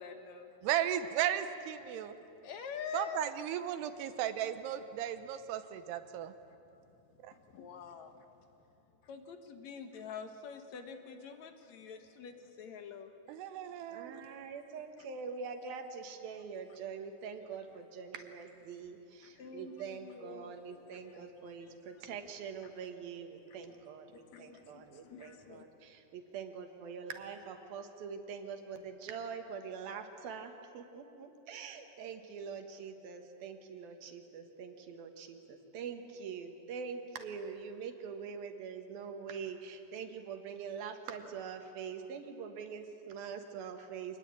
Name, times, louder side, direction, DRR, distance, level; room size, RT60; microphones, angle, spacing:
voice 1, 0.0-0.5 2.4-3.3 7.3-8.2 9.0-13.1 13.9-14.4 19.2-20.8 21.1-21.7 24.1-25.7, left 6 dB, 60° left, 7 dB, 2.0 m, -47 dB
voice 2, 0.6-2.2 2.9-6.3 7.2-7.3 13.3-14.2, right 11 dB, 90° right, 10 dB, 3.1 m, -35 dB
voice 3, 13.9-44.2, right 6 dB, 70° right, 6 dB, 3.2 m, -44 dB
25.5 x 20.0 x 8.8 m, 2.8 s
omnidirectional pair, 4.6 m